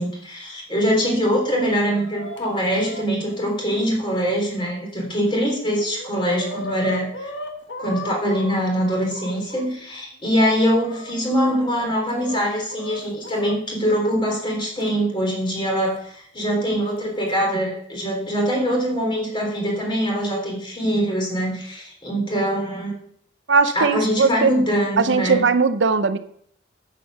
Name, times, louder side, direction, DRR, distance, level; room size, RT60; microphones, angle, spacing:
voice 1, 0.0-7.3 7.8-23.0 23.7-25.4, equal, 25° left, 0 dB, 3.4 m, -23 dB
Chicken rooster, 1.3-4.7 5.3-5.4 5.6-9.7 10.3-13.5 14.8-14.9 15.9-16.0 17.0-17.3, left 2 dB, 80° left, 1.6 m, -37 dB
voice 2, 23.5-24.5 25.0-26.2, right 4 dB, 75° right, 11 dB, 0.7 m, -19 dB
9.2 x 7.5 x 6.6 m, 0.65 s
head